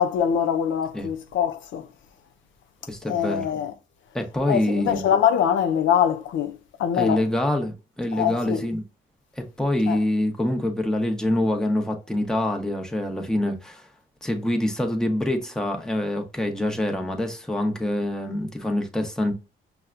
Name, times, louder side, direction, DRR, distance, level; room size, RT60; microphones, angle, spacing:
voice 1, 0.0-1.9 3.1-3.7 4.5-7.2 8.1-8.7 9.9-10.0, left 8 dB, 75° left, 0.4 m, -23 dB
voice 2, 2.9-3.4 4.1-5.0 6.9-8.8 9.4-13.9 14.2-19.3, left 1 dB, 5° left, 0.8 m, -25 dB
5.4 x 2.2 x 2.4 m
cardioid pair, 90°, 20 cm